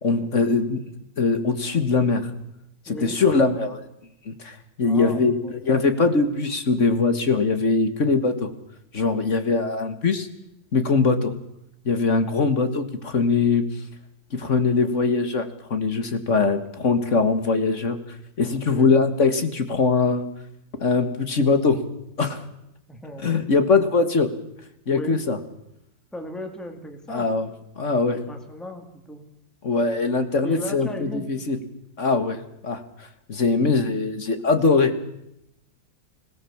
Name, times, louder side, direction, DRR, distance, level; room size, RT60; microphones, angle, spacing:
voice 1, 0.0-0.8 1.2-2.3 2.9-3.8 4.3-8.5 8.9-10.3 10.7-11.3 11.9-13.6 14.3-18.0 18.4-20.2 20.8-21.8 22.2-22.4 23.2-24.3 24.9-25.4 27.1-27.5 27.8-28.2 29.6-31.6 32.0-32.4 32.6-32.8 33.3-34.9, left 4 dB, 40° left, 9 dB, 1.9 m, -21 dB
voice 2, 2.9-3.2 4.8-5.5 18.7-19.0 22.9-23.5 24.9-25.2 26.1-27.3 28.1-29.2 30.4-31.3, left 1 dB, ahead, 4 dB, 2.5 m, -36 dB
25.5 x 18.0 x 7.2 m, 0.83 s
omnidirectional pair, 2.0 m